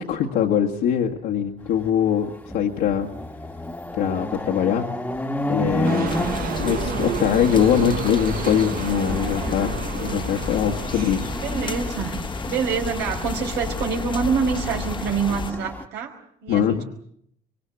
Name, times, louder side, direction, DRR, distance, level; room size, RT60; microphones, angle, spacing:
voice 1, 0.0-3.1 4.0-4.9 5.5-6.1 6.6-11.3 16.5-16.8, left 9 dB, 85° left, -1 dB, 1.9 m, -22 dB
Chatter / Car passing by / Motorcycle, 1.8-1.9 2.3-15.8, left 1 dB, 10° left, 1.5 m, -32 dB
sound 1, 5.8-11.9, right 9 dB, 60° right, 1.1 m, -31 dB
sound 2, 6.1-15.5, left 5 dB, 30° left, 1.2 m, -32 dB
voice 2, 11.4-12.2 12.5-16.8, right 6 dB, 85° right, 3 dB, 4.9 m, -26 dB
24.5 x 23.5 x 7.8 m, 0.70 s
cardioid pair, 110°, 17 cm